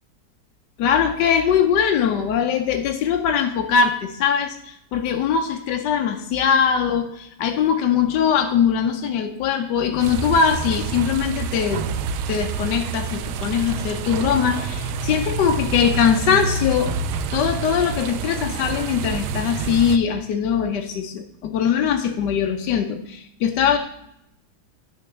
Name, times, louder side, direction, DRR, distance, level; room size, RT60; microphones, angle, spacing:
voice 1, 0.8-11.8 12.3-17.0 17.3-23.8, left 7 dB, 70° left, 4 dB, 1.1 m, -21 dB
sound 1, 10.0-20.0, right 4 dB, 85° right, 1.4 m, -28 dB
9.6 x 4.4 x 6.0 m, 0.78 s
omnidirectional pair, 2.2 m